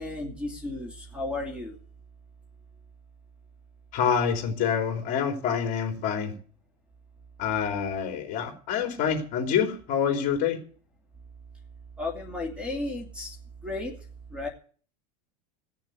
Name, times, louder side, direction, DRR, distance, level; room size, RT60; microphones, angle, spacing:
voice 1, 0.0-1.8 12.0-13.4 13.6-14.0 14.3-14.5, left 2 dB, 5° right, 2 dB, 2.6 m, -33 dB
voice 2, 3.9-6.3 7.4-10.6, left 7 dB, 40° left, 4 dB, 3.5 m, -27 dB
16.5 x 6.9 x 9.4 m, 0.44 s
supercardioid pair, 145°, 20 cm